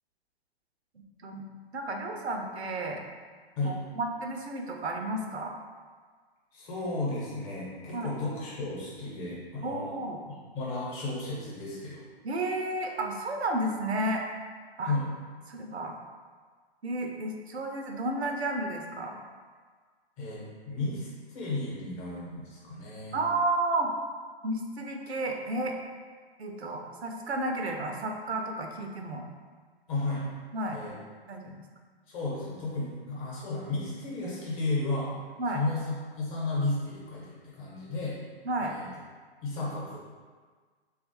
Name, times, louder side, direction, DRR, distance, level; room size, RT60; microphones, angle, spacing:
voice 1, 1.7-3.0 3.6-5.5 7.9-8.1 9.6-10.2 12.2-14.2 14.8-15.0 15.5-15.9 16.8-19.2 23.1-23.9 24.4-25.8 26.4-29.3 30.5-30.8 31.3-31.6 35.4-35.6 38.4-38.7, right 2 dB, 80° right, 2 dB, 0.5 m, -32 dB
voice 2, 6.5-9.9 10.3-12.0 14.9-15.0 20.2-23.1 29.9-30.3 30.7-30.9 32.1-35.1 35.5-38.2 38.6-38.9 39.4-40.0, left 2 dB, 35° left, -5 dB, 0.9 m, -33 dB
3.0 x 2.4 x 2.8 m, 1.5 s
figure-of-eight pair, 115°, 32 cm